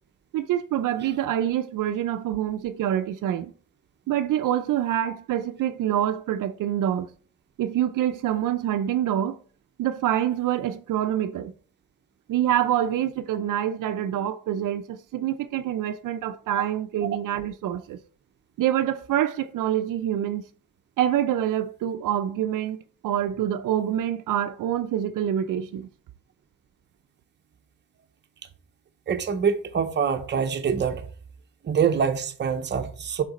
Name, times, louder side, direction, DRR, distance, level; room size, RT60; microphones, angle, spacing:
voice 1, 0.3-3.5 4.1-7.1 7.6-9.4 9.8-11.5 12.3-18.0 18.6-20.5 21.0-22.8 23.0-25.9, right 11 dB, 70° right, 0.5 m, -26 dB
voice 2, 29.1-31.0 31.6-33.2, right 7 dB, 35° right, 0.6 m, -25 dB
6.4 x 3.9 x 4.1 m
cardioid pair, 145°, 33 cm